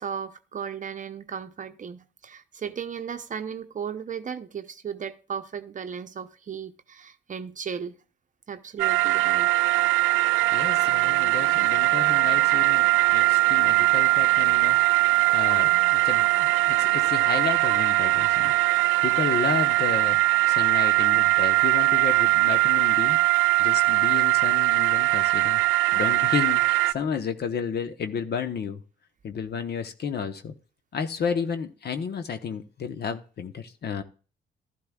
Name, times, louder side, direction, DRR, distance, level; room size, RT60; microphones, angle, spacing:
voice 1, 0.0-8.0 8.5-9.5, right 7 dB, 40° right, 0.8 m, -35 dB
sound 1, 8.8-26.9, right 19 dB, 85° right, 0.4 m, -21 dB
voice 2, 10.5-14.8 15.3-18.5 19.0-20.2 20.5-23.2 23.6-25.6 25.9-28.8 29.2-30.5 30.9-34.0, left 6 dB, 55° left, 1.0 m, -32 dB
12.5 x 11.5 x 2.4 m
cardioid pair, 90°, 20 cm